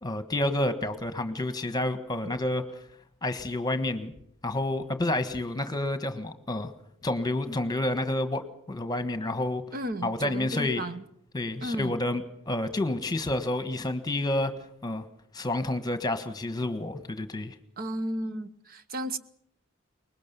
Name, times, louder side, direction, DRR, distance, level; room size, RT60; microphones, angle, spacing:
voice 1, 0.0-2.6 3.2-4.1 4.4-6.7 7.0-9.6 10.0-10.8 11.3-14.5 14.8-15.0 15.3-17.5, left 1 dB, 20° left, 10 dB, 1.5 m, -29 dB
voice 2, 9.7-11.0 11.6-12.0 17.8-19.2, right 1 dB, 45° right, 11 dB, 1.0 m, -34 dB
24.0 x 20.5 x 7.0 m, 0.70 s
head